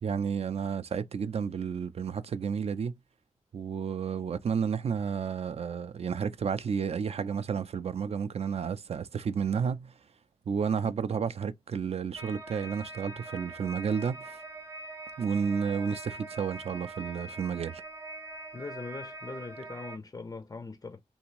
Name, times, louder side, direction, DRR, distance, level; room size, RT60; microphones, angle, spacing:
voice 1, 0.0-3.0 3.5-9.9 10.5-14.4 15.2-17.8, right 6 dB, 55° right, 0.4 m, -31 dB
sound 1, 12.2-20.0, right 2 dB, 20° right, 0.8 m, -43 dB
voice 2, 18.5-21.0, left 3 dB, 30° left, 0.4 m, -41 dB
2.7 x 2.5 x 2.9 m
cardioid pair, 70°, 13 cm